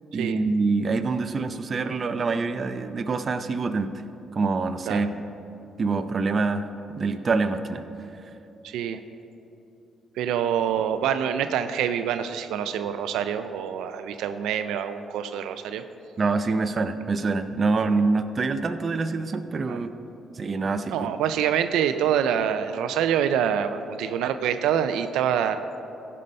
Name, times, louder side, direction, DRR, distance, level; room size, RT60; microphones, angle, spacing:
voice 1, 0.1-3.9 4.3-5.2 5.8-6.7 7.0-7.8 16.2-19.9 20.4-20.9, right 4 dB, 40° right, 10 dB, 0.6 m, -25 dB
voice 2, 8.6-9.0 10.2-15.8 19.7-19.8 20.9-25.6, right 9 dB, 90° right, 10 dB, 0.4 m, -26 dB
15.5 x 5.5 x 5.3 m, 2.8 s
cardioid pair, 90°, 0 cm